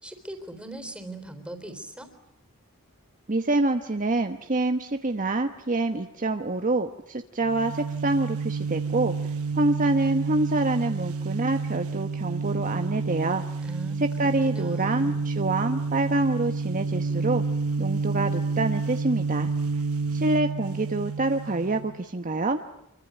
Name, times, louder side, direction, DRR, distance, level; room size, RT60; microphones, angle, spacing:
voice 1, 0.0-2.1 13.6-15.2, right 2 dB, 5° right, 7 dB, 3.8 m, -40 dB
voice 2, 3.3-9.1 9.5-13.4 14.0-17.4 17.8-19.5 20.1-22.6, right 2 dB, 40° right, 6 dB, 1.1 m, -26 dB
sound 1, 7.4-22.0, right 4 dB, 75° right, 1.1 m, -29 dB
26.0 x 23.5 x 9.3 m, 0.80 s
head